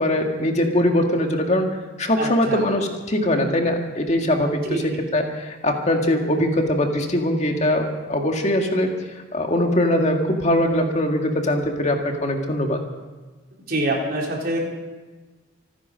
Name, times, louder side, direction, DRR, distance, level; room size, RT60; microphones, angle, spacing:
voice 1, 0.0-1.7 2.0-8.9 9.3-12.8, left 1 dB, 35° left, 3 dB, 2.0 m, -21 dB
voice 2, 2.2-2.6 4.7-5.0 13.7-14.6, right 1 dB, 50° right, -1 dB, 3.6 m, -25 dB
26.0 x 10.0 x 5.2 m, 1.3 s
head